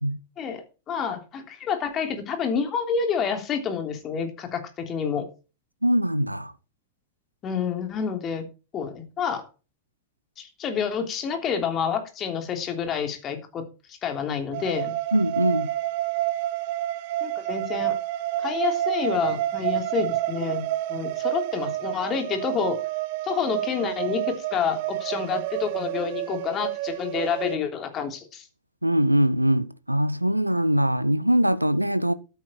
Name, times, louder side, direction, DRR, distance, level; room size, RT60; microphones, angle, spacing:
voice 1, 0.4-5.3 7.4-8.4 8.7-9.5 10.4-14.9 17.2-18.0 18.4-20.6 20.9-22.8 23.2-28.5, left 6 dB, 30° left, 3.2 m, -28 dB
voice 2, 5.8-6.5 15.1-15.7 21.0-21.1 28.8-32.1, equal, 90° right, 0.7 m, -22 dB
sound 1, 14.5-27.6, right 15 dB, 50° right, 1.1 m, -29 dB
12.5 x 9.2 x 4.5 m
figure-of-eight pair, 90°, 0 cm